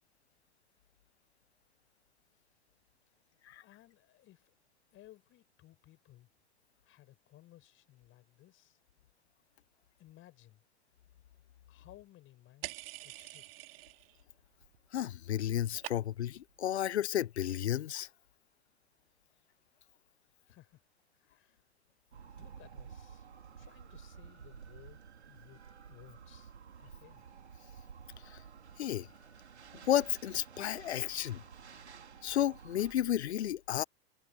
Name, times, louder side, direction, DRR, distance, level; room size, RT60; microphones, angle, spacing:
voice 1, 3.6-4.5 4.9-6.3 6.8-8.8 10.0-10.6 11.7-13.5 20.5-20.8 21.1-21.6 22.4-23.3 23.6-25.6 25.9-26.5 26.8-27.2, left 15 dB, 40° left, 5.8 m, -59 dB
sound 1, 12.6-14.2 14.5-15.1 15.3-16.4, right 17 dB, 60° right, 2.1 m, -46 dB
voice 2, 14.9-18.1 28.2-28.4 28.8-29.1 29.7-31.4 32.2-33.8, left 11 dB, 80° left, 0.6 m, -32 dB
sound 2, 22.1-32.9, right 7 dB, 80° right, 3.3 m, -52 dB
figure-of-eight pair, 95°, 33 cm